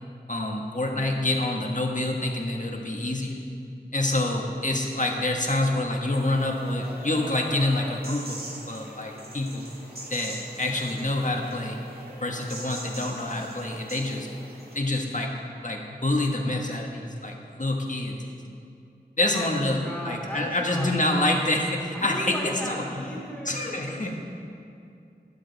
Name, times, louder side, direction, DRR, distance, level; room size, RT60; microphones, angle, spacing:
voice 1, 0.3-3.4 3.9-8.4 8.7-9.7 10.1-11.8 12.2-14.3 14.7-15.3 15.6-18.2 19.2-22.8 23.4-24.1, left 1 dB, 50° left, 1 dB, 1.5 m, -27 dB
sound 1, 6.1-14.8, right 1 dB, 65° right, 2.2 m, -42 dB
voice 2, 19.3-20.9 21.9-24.1, equal, 10° left, -5 dB, 2.3 m, -36 dB
12.0 x 11.0 x 4.1 m, 2.5 s
wide cardioid pair, 45°, 17 cm